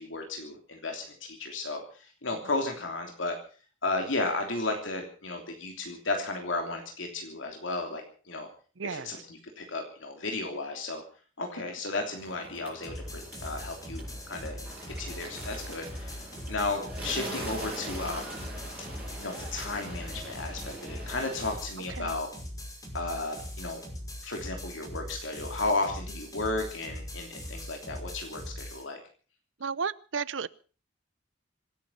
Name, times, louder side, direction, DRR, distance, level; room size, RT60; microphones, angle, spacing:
voice 1, 0.0-3.4 3.8-8.0 8.3-8.5 8.8-11.0 11.4-14.6 15.0-18.4 19.2-22.3 22.9-23.8 24.2-29.0, left 2 dB, 75° left, 3.1 m, -34 dB
voice 2, 8.8-9.1 17.0-17.1 21.9-22.1 29.6-30.5, right 5 dB, 70° right, 0.7 m, -33 dB
Bird, 12.1-21.5, right 1 dB, 10° right, 7.1 m, -43 dB
sound 1, 12.8-28.8, left 1 dB, 20° left, 5.6 m, -41 dB
26.0 x 9.4 x 5.8 m
head